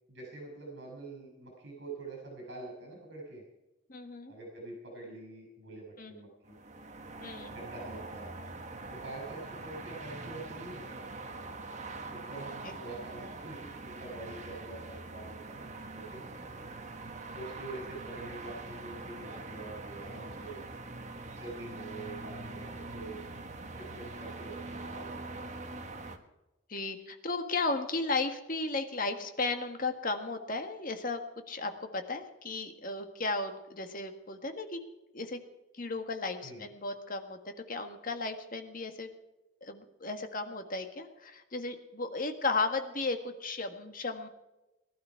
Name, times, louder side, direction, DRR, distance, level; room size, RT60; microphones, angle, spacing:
voice 1, 0.1-3.4 4.3-6.6 7.5-8.3 8.9-11.1 12.1-15.6 15.9-16.2 17.3-20.6 21.4-23.2 23.8-25.5 36.4-36.7, right 2 dB, 55° right, -1 dB, 5.8 m, -45 dB
voice 2, 3.9-4.3 6.0-6.1 7.2-7.5 12.6-12.7 26.7-31.2 31.5-34.8 35.1-35.4 35.8-39.1 39.6-44.3, left 3 dB, 40° left, 6 dB, 1.7 m, -35 dB
sound 1, 6.4-26.2, right 3 dB, 35° right, 1.4 m, -43 dB
19.5 x 12.5 x 4.6 m, 0.99 s
head